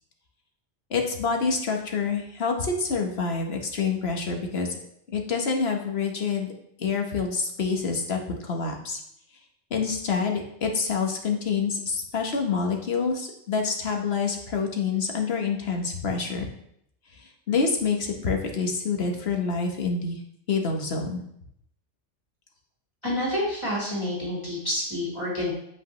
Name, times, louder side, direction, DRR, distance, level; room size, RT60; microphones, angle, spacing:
voice 1, 0.9-4.8 5.1-6.5 6.8-9.0 9.7-16.4 17.1-20.2 20.5-21.2, left 5 dB, 50° left, 2 dB, 1.4 m, -27 dB
voice 2, 23.0-25.5, left 1 dB, 20° left, -7 dB, 3.6 m, -28 dB
8.2 x 8.0 x 3.1 m, 0.73 s
omnidirectional pair, 1.4 m